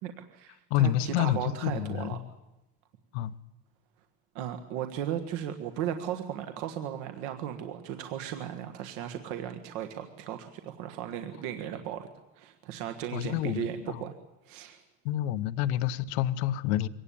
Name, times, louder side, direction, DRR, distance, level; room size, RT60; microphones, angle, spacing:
voice 1, 0.0-2.2 4.3-12.1 12.3-14.1 14.4-14.8, right 10 dB, 65° right, 7 dB, 1.6 m, -36 dB
voice 2, 0.7-2.2 3.1-3.3 13.1-14.0 15.0-16.9, left 12 dB, 80° left, 12 dB, 1.0 m, -28 dB
23.5 x 18.0 x 8.6 m, 0.96 s
cardioid pair, 170°, 32 cm